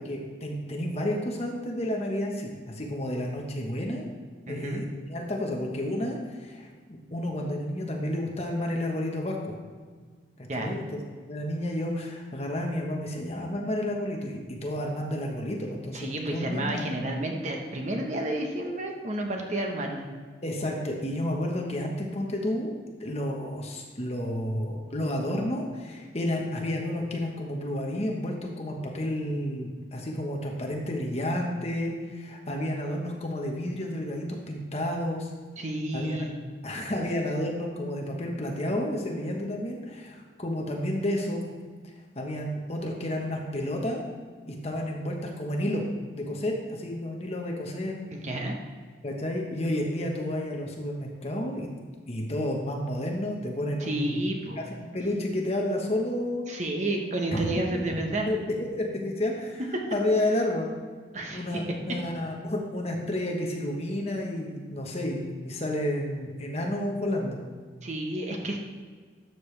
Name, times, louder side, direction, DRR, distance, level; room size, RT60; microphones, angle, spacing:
voice 1, 0.0-4.0 4.5-9.6 10.4-11.0 11.3-17.0 20.4-22.7 23.0-35.3 35.9-36.2 36.6-41.4 42.1-44.0 44.5-45.9 46.1-48.0 49.0-51.7 52.1-54.3 54.6-54.7 54.9-56.4 57.3-57.5 57.7-57.8 58.3-59.6 59.9-60.7 61.3-67.4, left 1 dB, 35° left, 0 dB, 1.2 m, -31 dB
voice 2, 4.5-4.8 10.5-10.7 15.9-20.1 35.6-36.3 48.1-48.5 53.8-54.6 56.5-58.3 59.7-59.8 61.1-61.6 67.8-68.6, right 1 dB, 40° right, 1 dB, 1.1 m, -31 dB
12.5 x 6.8 x 3.3 m, 1.6 s
head